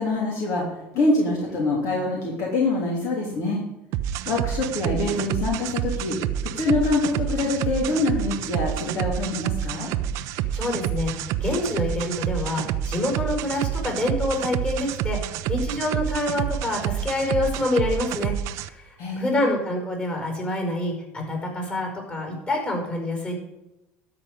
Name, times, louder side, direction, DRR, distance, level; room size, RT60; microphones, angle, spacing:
voice 1, 0.0-3.6 4.2-6.2 6.5-9.9 19.0-19.5, left 2 dB, 60° left, -2 dB, 3.1 m, -25 dB
sound 1, 3.9-18.7, right 10 dB, 65° right, 0.6 m, -28 dB
voice 2, 10.3-15.2 15.5-18.3 18.6-23.3, left 1 dB, 25° left, 1 dB, 5.3 m, -27 dB
12.5 x 5.1 x 8.2 m, 0.93 s
supercardioid pair, 105°, 6 cm